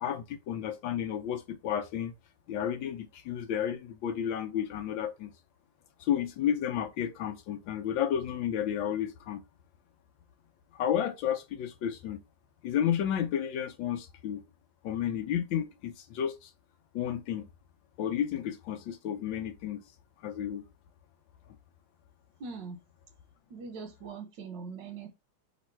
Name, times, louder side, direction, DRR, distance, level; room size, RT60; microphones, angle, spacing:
voice 1, 0.0-2.1 2.5-5.3 6.0-9.4 10.7-12.2 12.6-14.4 14.8-16.5 16.9-17.5 18.0-19.8 20.2-20.7, left 9 dB, 75° left, 1.2 m, -32 dB
voice 2, 22.4-22.8 23.5-25.1, right 5 dB, 65° right, 1.5 m, -41 dB
3.9 x 3.0 x 4.3 m
omnidirectional pair, 2.3 m